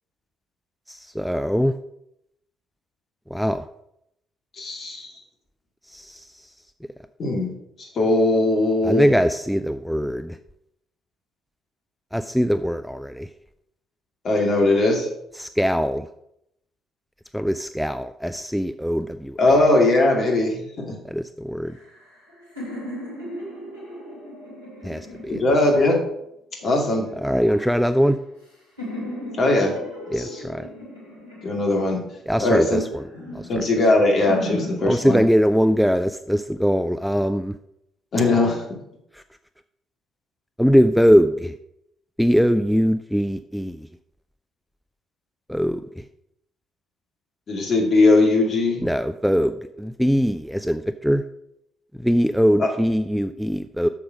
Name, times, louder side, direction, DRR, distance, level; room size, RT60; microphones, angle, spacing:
voice 1, 0.9-1.8 3.3-3.6 5.9-6.5 8.8-10.4 12.1-13.3 15.4-16.1 17.3-19.6 21.0-21.8 24.8-25.4 27.2-28.2 30.1-30.7 32.3-33.0 33.3-33.6 34.8-37.6 39.1-39.2 40.6-41.6 42.2-43.9 45.5-46.1 48.8-51.2 52.0-53.9, equal, ahead, 10 dB, 0.4 m, -21 dB
voice 2, 4.6-5.1 7.2-7.5 7.8-9.1 14.2-15.1 19.4-21.0 25.3-26.0 26.6-27.0 29.4-29.7 30.3-30.4 31.4-32.0 32.4-32.8 33.5-35.2 38.1-38.6 47.5-48.9 52.6-52.7, left 2 dB, 45° left, 1 dB, 2.5 m, -19 dB
sound 1, 21.7-26.0 26.6-28.5 28.8-32.1 32.7-34.7, left 1 dB, 90° right, 2.8 m, -36 dB
7.4 x 6.9 x 5.0 m, 0.78 s
figure-of-eight pair, 45°, 0 cm